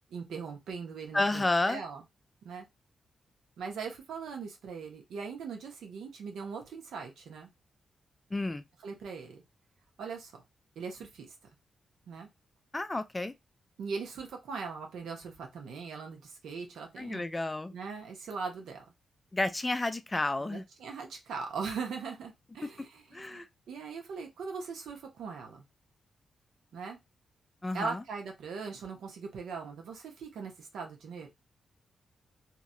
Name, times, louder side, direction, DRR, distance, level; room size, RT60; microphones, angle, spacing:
voice 1, 0.1-2.0 2.4-2.7 3.6-7.5 8.8-9.4 10.0-10.3 10.8-11.3 12.1-12.3 13.8-17.2 17.7-18.8 20.5-25.6 26.7-27.0 27.7-31.3, right 5 dB, 90° right, 0.9 m, -40 dB
voice 2, 1.1-1.8 8.3-8.6 12.7-13.3 17.0-17.7 19.3-20.6 23.1-23.5 27.6-28.0, left 2 dB, 20° left, 0.3 m, -31 dB
2.9 x 2.7 x 2.6 m
cardioid pair, 95°, 0 cm